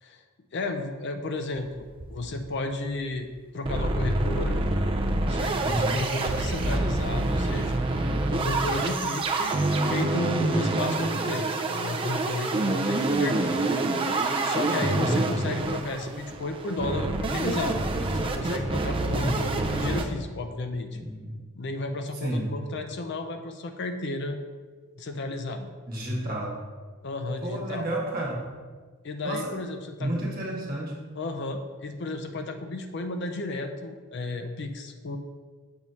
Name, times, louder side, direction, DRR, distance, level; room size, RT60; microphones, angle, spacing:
voice 1, 0.5-3.3 3.5-4.6 5.3-7.8 8.3-9.6 9.8-13.7 14.4-17.8 18.1-21.0 21.5-24.4 25.0-25.7 27.0-27.9 29.0-30.1 31.2-35.2, left 2 dB, 50° left, 6 dB, 0.4 m, -33 dB
sound 1, 1.6-2.5 2.8-2.9 3.1-3.2 3.6-20.0, right 2 dB, 25° right, 0.4 m, -27 dB
voice 2, 5.6-6.1 15.0-15.3 19.1-19.5 20.9-21.4 22.2-22.5 25.9-26.6 27.4-28.4 29.2-29.5 30.0-31.0, right 1 dB, 40° right, -3 dB, 1.3 m, -30 dB
7.0 x 3.1 x 5.3 m, 1.5 s
head